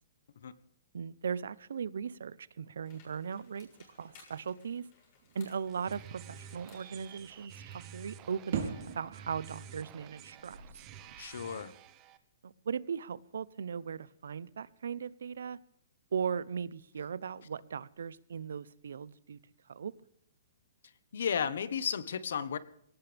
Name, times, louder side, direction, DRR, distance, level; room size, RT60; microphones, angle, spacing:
voice 1, 0.9-3.7 4.0-4.9 5.3-10.6 12.4-15.6 16.1-19.4 19.7-19.9, right 6 dB, 85° right, 19 dB, 0.8 m, -38 dB
sound 1, 2.8-7.9, left 5 dB, 35° left, 7.0 m, -62 dB
sound 2, 5.2-11.2, right 7 dB, 60° right, 3.6 m, -43 dB
sound 3, 5.7-12.2, right 8 dB, 25° right, 1.1 m, -51 dB
voice 2, 11.2-11.7 21.1-22.6, left 7 dB, 70° left, 15 dB, 1.3 m, -33 dB
21.0 x 18.5 x 3.5 m, 0.71 s
hypercardioid pair, 165°, 0 cm